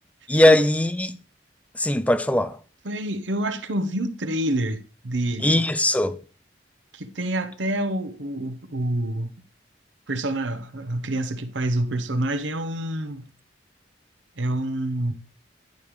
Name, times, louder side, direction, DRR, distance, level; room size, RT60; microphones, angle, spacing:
voice 1, 0.3-1.2 1.8-2.5 5.4-6.2, left 1 dB, 10° left, 0.6 m, -19 dB
voice 2, 2.8-5.7 6.9-9.3 10.1-13.2 14.4-15.1, right 1 dB, 75° right, 1.0 m, -27 dB
10.5 x 5.3 x 4.8 m
head